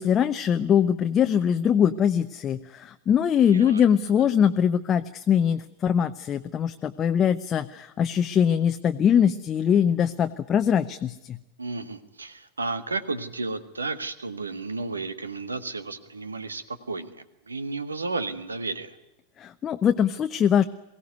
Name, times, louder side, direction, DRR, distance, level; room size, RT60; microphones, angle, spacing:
voice 1, 0.0-11.4 19.4-20.6, left 8 dB, 25° left, 8 dB, 0.7 m, -22 dB
voice 2, 3.5-3.8 11.6-19.0, right 3 dB, 75° right, 14 dB, 1.5 m, -33 dB
23.0 x 16.5 x 9.4 m, 0.98 s
figure-of-eight pair, 90°, 0 cm